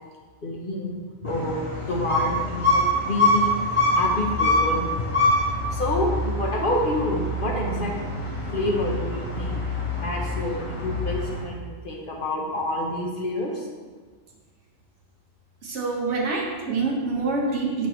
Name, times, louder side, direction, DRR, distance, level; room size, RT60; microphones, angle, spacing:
voice 1, 0.4-3.5 3.9-4.8 5.7-7.9 8.5-9.6 10.0-13.7, left 1 dB, 50° left, -1 dB, 0.9 m, -28 dB
sound 1, 1.2-11.4, left 1 dB, 25° left, 1.0 m, -25 dB
voice 2, 15.6-17.9, right 3 dB, 70° right, -1 dB, 1.3 m, -26 dB
6.0 x 5.9 x 3.0 m, 1.5 s
omnidirectional pair, 1.3 m